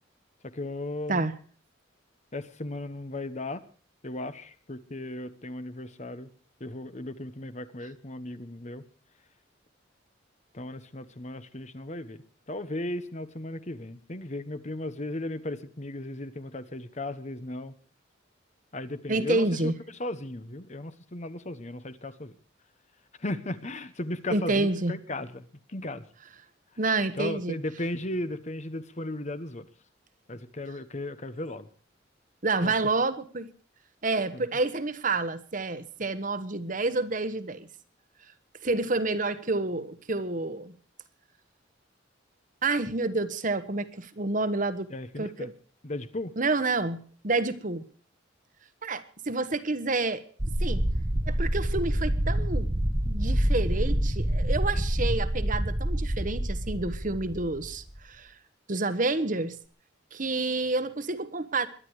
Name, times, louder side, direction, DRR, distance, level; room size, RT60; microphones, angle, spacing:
voice 1, 0.4-1.3 2.3-3.6 4.0-6.3 6.6-8.8 10.5-12.2 12.5-17.7 18.7-19.7 20.0-22.4 23.2-26.0 27.2-29.7 30.3-31.7 32.6-32.7 34.3-34.4 44.9-45.5 45.8-46.3, left 1 dB, 35° left, 12 dB, 1.1 m, -36 dB
voice 2, 19.1-19.7 24.3-24.9 26.8-27.6 32.4-33.5 34.0-37.7 38.6-40.8 42.6-44.9 45.2-45.5 46.4-47.8 48.8-50.2 50.6-50.9 51.3-52.7 53.1-58.3 58.7-59.6 60.1-61.7, right 3 dB, 45° right, 12 dB, 1.2 m, -29 dB
sound 1, 50.4-58.0, right 1 dB, 25° right, 1.0 m, -27 dB
22.5 x 10.5 x 4.8 m, 0.43 s
head